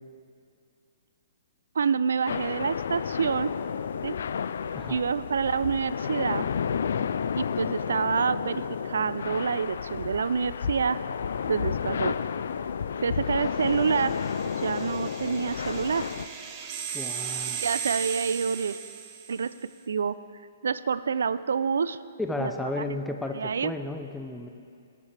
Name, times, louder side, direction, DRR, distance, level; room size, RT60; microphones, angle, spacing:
voice 1, 1.8-3.5 4.0-4.2 4.9-6.5 7.4-11.0 11.5-12.2 13.0-14.2 14.6-16.1 17.6-18.8 19.3-19.5 19.9-20.2 20.6-22.0 22.4-22.5 23.4-23.7, right 6 dB, 85° right, 16 dB, 0.3 m, -27 dB
sound 1, 2.3-16.3, left 7 dB, 70° left, 0.3 m, -31 dB
sound 2, 13.6-19.5, right 8 dB, 30° right, 0.9 m, -37 dB
voice 2, 16.9-17.7 22.2-24.5, left 2 dB, 5° left, 4 dB, 0.5 m, -33 dB
18.5 x 8.2 x 3.3 m, 2.4 s
hypercardioid pair, 160°, 0 cm